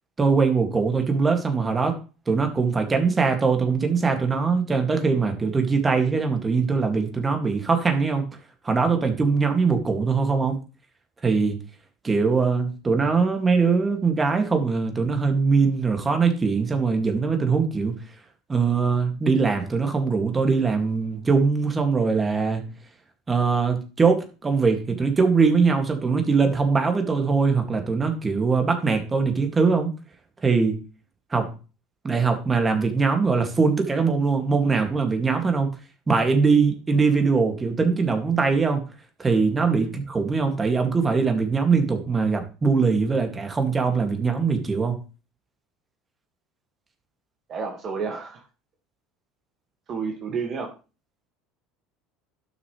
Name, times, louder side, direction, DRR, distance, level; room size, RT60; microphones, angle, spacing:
voice 1, 0.2-2.0 2.3-8.3 8.6-10.6 11.2-11.6 12.0-18.0 18.5-22.7 23.3-29.9 30.4-30.8 31.3-31.5 32.0-35.7 36.1-38.9 39.2-45.0, right 4 dB, 25° right, 5 dB, 2.2 m, -22 dB
voice 2, 47.5-48.4 49.9-50.7, right 5 dB, 45° right, 2 dB, 1.8 m, -30 dB
12.0 x 6.4 x 3.2 m, 0.33 s
hypercardioid pair, 75°, 0 cm